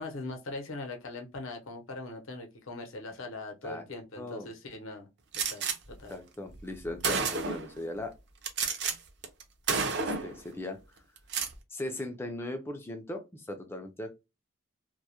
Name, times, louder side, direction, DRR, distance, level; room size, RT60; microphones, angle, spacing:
voice 1, 0.0-5.1 5.3-6.1, left 2 dB, 70° left, 0.7 m, -41 dB
voice 2, 4.2-4.5 6.1-8.1 9.9-11.0 11.7-14.1, left 1 dB, 10° left, 0.3 m, -38 dB
Gunshot gunfire, 5.3-5.8 6.6-6.7 7.0-7.7 8.4-8.9 9.2-9.4 9.7-10.3 11.2-11.5, right 5 dB, 55° right, 0.5 m, -30 dB
2.2 x 2.0 x 2.7 m
head